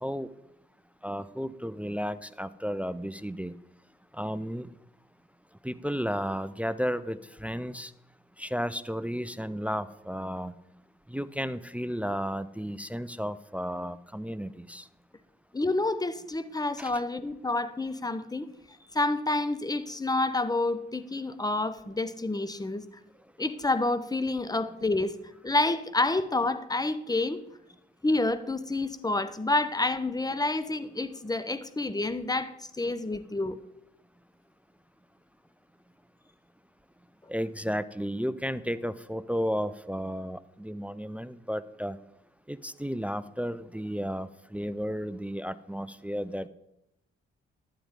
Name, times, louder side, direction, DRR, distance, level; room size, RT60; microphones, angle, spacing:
voice 1, 1.0-3.5 4.1-4.7 5.6-7.9 8.4-10.5 11.1-14.8 16.8-17.0 37.3-42.0 42.5-46.5, equal, 5° right, 15 dB, 0.5 m, -33 dB
voice 2, 15.5-18.5 18.9-22.8 23.4-25.1 25.4-27.4 28.0-33.6, left 2 dB, 15° left, 12 dB, 0.9 m, -28 dB
11.5 x 9.5 x 3.7 m, 0.83 s
hypercardioid pair, 40°, 29 cm